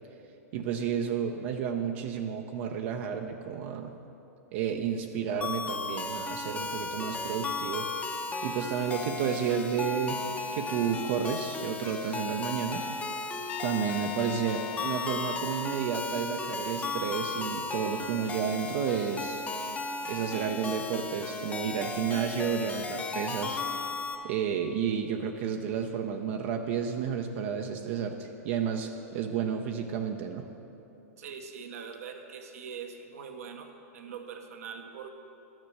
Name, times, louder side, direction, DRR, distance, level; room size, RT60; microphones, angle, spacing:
voice 1, 0.5-3.9 4.5-7.9 8.4-10.2 10.5-12.9 13.6-19.5 20.1-23.6 24.2-30.5, right 7 dB, 55° right, 4 dB, 0.7 m, -31 dB
sound 1, 5.4-24.2, left 3 dB, 15° left, 0.8 m, -35 dB
Trumpet, 13.5-15.8, left 11 dB, 55° left, 0.4 m, -39 dB
voice 2, 31.2-35.1, right 6 dB, 70° right, 5 dB, 1.0 m, -42 dB
12.0 x 6.2 x 6.7 m, 2.9 s
hypercardioid pair, 110°, 8 cm